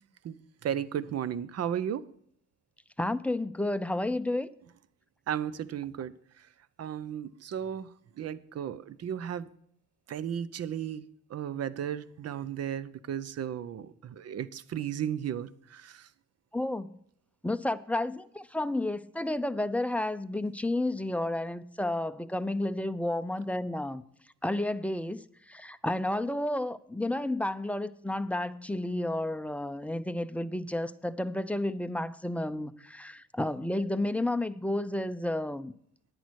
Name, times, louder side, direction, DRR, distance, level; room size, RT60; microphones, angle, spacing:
voice 1, 0.2-2.1 5.3-6.5 6.8-9.5 10.1-16.1, right 9 dB, 55° right, 0.7 m, -35 dB
voice 2, 3.0-4.5 16.5-16.9 17.4-24.0 24.4-35.7, left 1 dB, 5° left, 0.5 m, -31 dB
10.0 x 9.7 x 4.6 m
cardioid pair, 90°, 30 cm